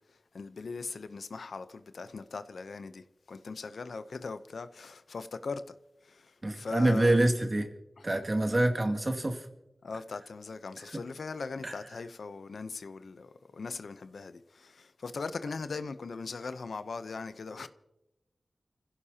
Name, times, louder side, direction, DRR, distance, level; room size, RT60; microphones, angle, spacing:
voice 1, 0.3-5.7 6.0-7.2 8.0-8.1 9.8-17.7, left 4 dB, 85° left, 0.7 m, -40 dB
voice 2, 6.4-7.7 8.0-9.5 10.8-11.0 11.6-11.8, right 1 dB, 40° right, 2.3 m, -26 dB
29.5 x 16.0 x 2.9 m
cardioid pair, 55°, 0 cm